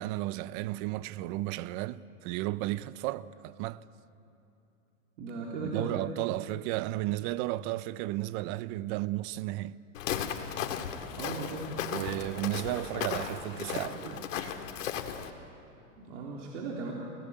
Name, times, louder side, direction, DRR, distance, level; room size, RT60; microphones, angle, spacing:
voice 1, 0.0-3.8 5.6-9.8 11.9-14.5, right 17 dB, 40° right, 0.7 m, -34 dB
voice 2, 5.2-5.9 11.2-11.6 16.0-16.9, right 4 dB, 65° right, 3.6 m, -37 dB
Walk footsteps, 9.9-15.3, left 8 dB, 70° left, 2.2 m, -36 dB
29.5 x 18.0 x 8.4 m
hypercardioid pair, 130°, 39 cm